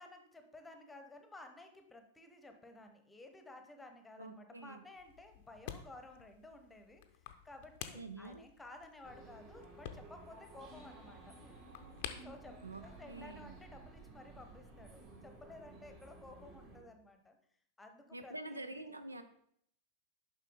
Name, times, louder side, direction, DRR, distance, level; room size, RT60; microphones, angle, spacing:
voice 1, 0.0-7.0 7.4-11.4 12.2-17.4 17.8-18.8, left 2 dB, 10° left, 6 dB, 0.9 m, -54 dB
voice 2, 4.2-4.8 7.9-8.4 12.6-13.6 18.1-19.2, right 2 dB, 80° right, 10 dB, 0.5 m, -47 dB
sound 1, 5.0-13.7, left 10 dB, 50° left, 0.6 m, -52 dB
sound 2, 9.0-16.8, right 2 dB, 35° right, 2.5 m, -55 dB
6.7 x 5.7 x 3.7 m, 0.68 s
figure-of-eight pair, 90°, 0 cm